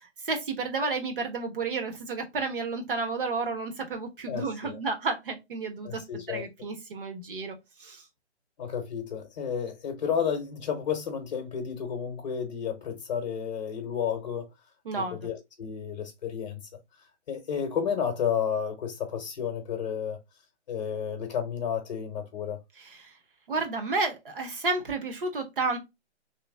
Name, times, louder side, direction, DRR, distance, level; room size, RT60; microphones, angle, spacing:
voice 1, 0.0-6.0 6.3-8.0 14.8-15.2 22.8-23.1 23.5-25.8, right 3 dB, 50° right, 1.3 m, -31 dB
voice 2, 4.3-4.8 5.8-6.4 8.6-14.5 14.9-16.6 17.3-20.2 20.7-22.6, left 7 dB, 40° left, 0.8 m, -31 dB
3.3 x 3.1 x 3.4 m
hypercardioid pair, 160°, 35 cm